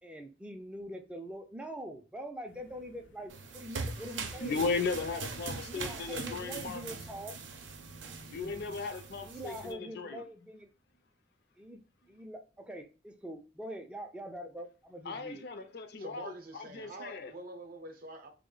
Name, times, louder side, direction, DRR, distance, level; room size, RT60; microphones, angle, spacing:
voice 1, 0.0-4.7 5.7-7.3 9.2-10.7 11.6-11.8 12.1-15.4, equal, 5° right, 0.3 m, -44 dB
sound 1, 2.5-8.8, left 1 dB, 90° left, 0.8 m, -57 dB
sound 2, 3.3-9.7, right 4 dB, 90° right, 0.6 m, -42 dB
voice 2, 4.4-6.8 8.3-10.2 15.1-17.3, left 4 dB, 60° left, 0.4 m, -36 dB
voice 3, 16.0-18.3, right 1 dB, 50° right, 0.6 m, -46 dB
3.0 x 2.1 x 3.7 m
head